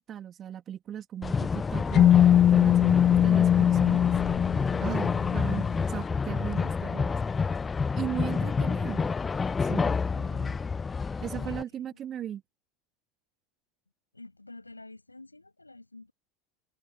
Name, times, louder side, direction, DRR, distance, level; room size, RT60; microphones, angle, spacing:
voice 1, 0.0-4.1 4.8-7.2 8.0-9.1 9.6-9.9 11.2-12.4, right 10 dB, 35° right, 2.6 m, -37 dB
sound 1, 1.2-11.6, left 5 dB, 20° left, 0.5 m, -29 dB
sound 2, 1.9-5.8, left 10 dB, 35° left, 0.9 m, -21 dB
voice 2, 11.3-12.4 14.1-16.1, left 2 dB, 85° left, 7.8 m, -50 dB
figure-of-eight pair, 75°, 0 cm